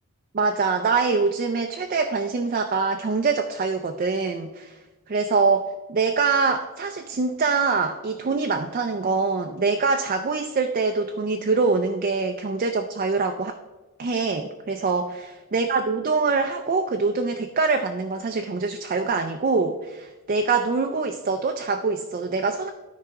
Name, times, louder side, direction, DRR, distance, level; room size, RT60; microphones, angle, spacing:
voice 1, 0.3-4.8 5.1-5.6 5.9-13.5 14.0-15.1 15.5-22.7, right 4 dB, 40° right, 5 dB, 0.4 m, -24 dB
12.5 x 4.7 x 3.6 m, 1.2 s
head